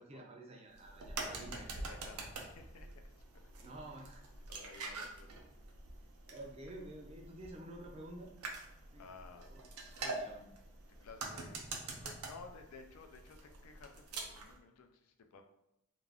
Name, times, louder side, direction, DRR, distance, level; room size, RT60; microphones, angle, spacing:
voice 1, 0.0-2.0 3.6-4.3 5.0-5.1 6.2-8.3 8.9-9.1 9.4-9.6 9.9-10.5, right 1 dB, 30° right, 0 dB, 0.4 m, -51 dB
sound 1, 0.7-14.6, right 3 dB, 90° right, 0.5 m, -46 dB
voice 2, 1.1-3.5 4.5-5.4 9.0-9.5 10.0-10.2 11.0-11.6 11.9-15.4, left 4 dB, 90° left, 5 dB, 0.4 m, -55 dB
2.4 x 2.3 x 3.3 m, 0.83 s
head